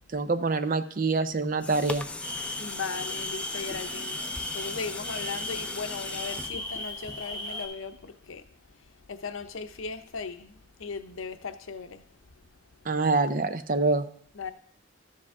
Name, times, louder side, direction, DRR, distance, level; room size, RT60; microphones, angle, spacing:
voice 1, 0.1-2.1 12.9-14.1, right 3 dB, 40° right, 0.6 m, -26 dB
sound 1, 1.3-7.6 8.1-8.2, left 2 dB, 5° left, 0.4 m, -38 dB
sound 2, 2.2-7.7, left 1 dB, 20° left, 4.4 m, -37 dB
voice 2, 2.6-12.1 14.3-14.5, left 5 dB, 80° left, 0.7 m, -38 dB
13.0 x 7.5 x 3.6 m
head